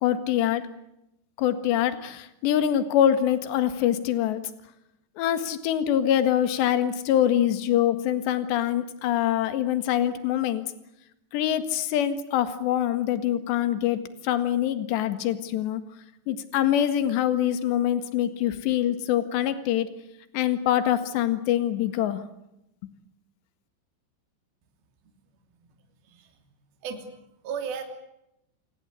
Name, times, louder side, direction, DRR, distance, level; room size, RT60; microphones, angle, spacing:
voice 1, 0.0-0.6 1.4-4.4 5.2-10.6 11.3-15.8 16.3-19.9 20.3-22.2, left 11 dB, 65° left, 10 dB, 3.6 m, -24 dB
voice 2, 26.8-27.8, right 6 dB, 50° right, 5 dB, 4.4 m, -35 dB
28.5 x 21.5 x 8.4 m, 0.82 s
omnidirectional pair, 5.9 m